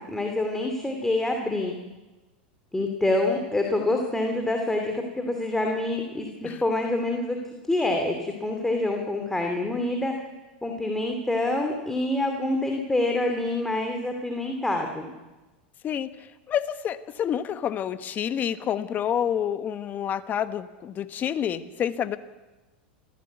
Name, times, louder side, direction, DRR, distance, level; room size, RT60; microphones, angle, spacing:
voice 1, 0.0-1.8 2.7-7.4 7.7-10.1 10.6-15.1, left 2 dB, 5° left, 3 dB, 2.7 m, -26 dB
voice 2, 16.5-22.2, left 9 dB, 30° left, 11 dB, 1.3 m, -28 dB
26.0 x 15.5 x 8.3 m, 1.2 s
hypercardioid pair, 110°, 6 cm